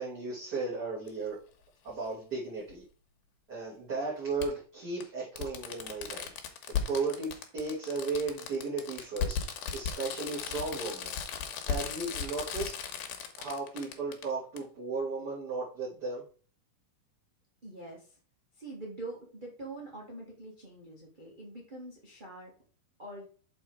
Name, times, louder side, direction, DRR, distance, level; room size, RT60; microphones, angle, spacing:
voice 1, 0.0-1.4 1.8-2.8 3.5-6.3 6.9-9.3 9.7-11.1 11.7-12.7 13.4-16.2, right 3 dB, 30° right, -8 dB, 2.9 m, -35 dB
Fireworks, 1.1-1.2 2.7-2.8 4.4-4.5 5.0-5.1 5.4-14.2 14.6-14.7, left 7 dB, 80° left, 3.0 m, -36 dB
voice 2, 17.6-18.2 18.5-22.5 23.0-23.2, right 2 dB, 65° right, -3 dB, 0.4 m, -44 dB
7.1 x 4.6 x 4.7 m, 0.39 s
omnidirectional pair, 4.3 m